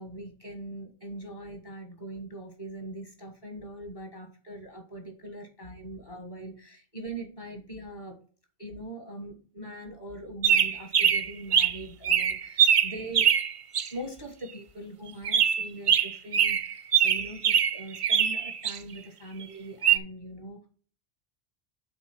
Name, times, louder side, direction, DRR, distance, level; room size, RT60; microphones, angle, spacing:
voice 1, 0.0-8.2 8.6-13.3 13.9-20.7, right 1 dB, 45° left, 2 dB, 2.0 m, -41 dB
sound 1, 10.4-11.8 12.0-13.9 15.2-18.8 19.8-20.0, right 8 dB, 50° right, 0.4 m, -23 dB
7.7 x 4.2 x 6.3 m, 0.42 s
omnidirectional pair, 1.1 m